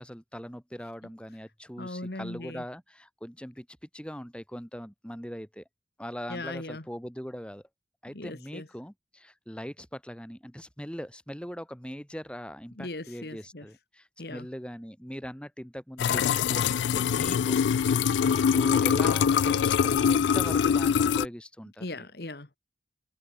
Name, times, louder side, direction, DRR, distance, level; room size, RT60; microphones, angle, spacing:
voice 1, 0.0-5.6 6.0-7.6 8.0-17.6 18.2-22.0, equal, 5° left, 7.2 m, -41 dB
voice 2, 1.8-2.6 6.3-6.8 8.1-8.7 12.8-13.7 14.2-14.5 21.8-22.6, left 2 dB, 60° left, 1.6 m, -38 dB
sound 1, 16.0-21.3, left 7 dB, 80° left, 0.3 m, -24 dB
head